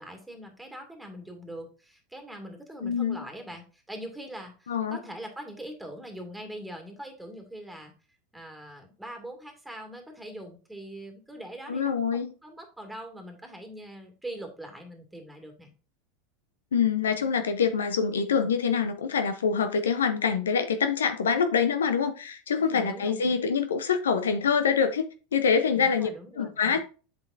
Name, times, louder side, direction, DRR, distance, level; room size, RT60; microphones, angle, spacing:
voice 1, 0.0-7.9 8.3-15.7 22.6-23.4 25.7-26.8, right 1 dB, 5° right, 2.3 m, -42 dB
voice 2, 2.8-3.2 4.7-5.0 11.7-12.3 16.7-26.1 26.4-26.8, left 6 dB, 90° left, 0.8 m, -25 dB
7.9 x 5.4 x 2.6 m
hypercardioid pair, 95°, 0 cm